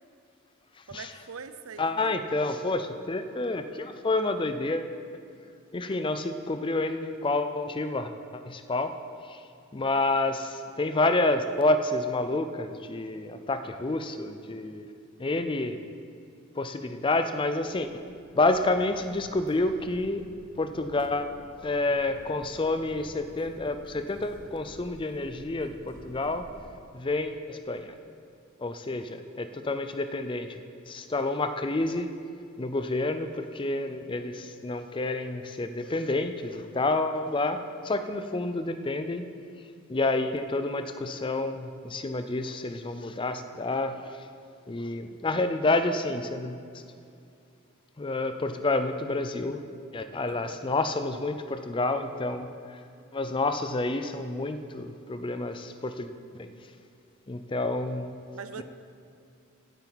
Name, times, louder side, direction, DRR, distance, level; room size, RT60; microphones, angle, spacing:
voice 1, 0.9-2.2 50.2-50.6 58.3-58.6, right 6 dB, 80° right, 11 dB, 0.6 m, -42 dB
voice 2, 1.8-4.9 5.7-9.0 9.3-9.4 9.7-14.9 15.2-15.8 16.5-17.9 18.3-20.2 20.6-21.3 21.6-26.5 26.9-27.9 28.6-32.1 32.6-39.3 39.9-44.0 44.7-46.6 48.0-49.6 49.9-52.8 53.1-56.1 56.3-56.5 57.3-58.3 58.6-58.7, left 2 dB, 25° left, 9 dB, 0.4 m, -29 dB
Crackle, 17.5-26.7, equal, 20° right, 2.4 m, -51 dB
16.0 x 8.8 x 4.1 m, 2.4 s
head